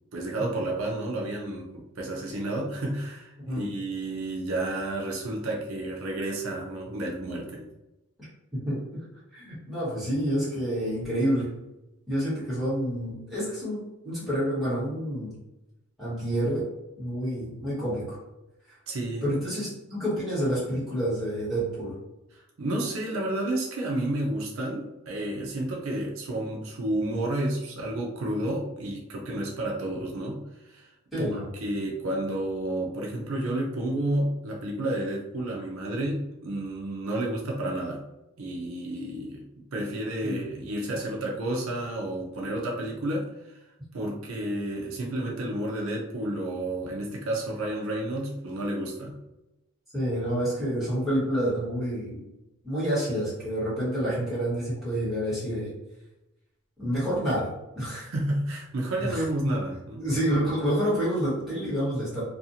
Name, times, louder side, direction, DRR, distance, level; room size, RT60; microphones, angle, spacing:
voice 1, 0.1-7.7 18.9-19.2 22.3-30.9 31.2-38.0 38.4-43.6 43.9-49.2 57.9-60.1, right 1 dB, 65° right, -1 dB, 0.5 m, -31 dB
voice 2, 9.3-11.5 12.1-13.8 14.0-15.3 16.0-16.6 17.0-18.2 19.2-21.9 31.1-31.5 40.2-40.4 49.9-52.2 52.6-55.7 56.8-57.5 57.8-58.1 59.0-59.2 60.0-62.2, equal, ahead, -11 dB, 1.3 m, -28 dB
2.5 x 2.4 x 2.7 m, 0.96 s
head